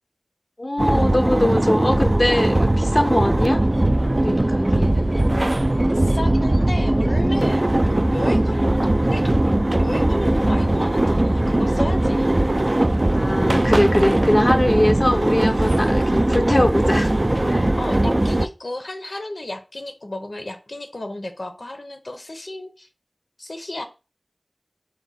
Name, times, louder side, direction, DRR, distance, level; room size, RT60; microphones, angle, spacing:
voice 1, 0.6-3.6 4.1-5.1 13.1-17.1 17.5-17.7, left 1 dB, 40° left, 0.4 m, -22 dB
sound 1, 0.8-18.5, right 1 dB, 45° right, 0.3 m, -19 dB
voice 2, 5.9-7.7 8.1-9.5 9.8-12.4 17.8-22.9 23.4-23.8, left 1 dB, 85° left, 0.7 m, -33 dB
4.8 x 2.2 x 4.1 m
wide cardioid pair, 40°, 0 cm